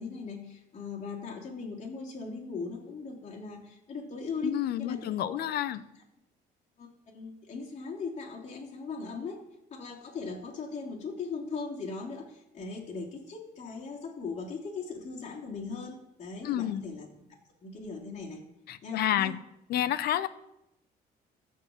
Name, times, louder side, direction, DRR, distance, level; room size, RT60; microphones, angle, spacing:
voice 1, 0.0-5.4 5.6-6.0 6.8-9.4 9.7-17.3 17.6-18.4 18.8-19.3, left 4 dB, 45° left, -1 dB, 3.0 m, -39 dB
voice 2, 4.4-5.8 16.4-16.8 18.7-19.4 19.7-20.3, left 12 dB, 70° left, 14 dB, 0.7 m, -29 dB
14.0 x 4.7 x 7.2 m, 0.87 s
cardioid pair, 110°, 17 cm